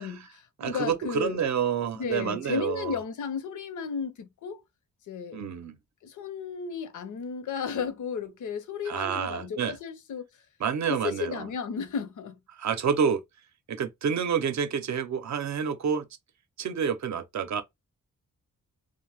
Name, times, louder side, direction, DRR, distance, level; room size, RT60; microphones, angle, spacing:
voice 1, 0.0-1.4 1.9-4.6 5.1-5.4 6.0-10.3 10.9-12.4, left 6 dB, 70° left, 0.6 m, -34 dB
voice 2, 0.6-3.0 5.3-5.8 8.9-9.8 10.6-11.5 12.5-13.2 13.7-16.1 16.6-17.6, right 7 dB, 60° right, 0.6 m, -28 dB
2.6 x 2.1 x 3.2 m
wide cardioid pair, 145°, 31 cm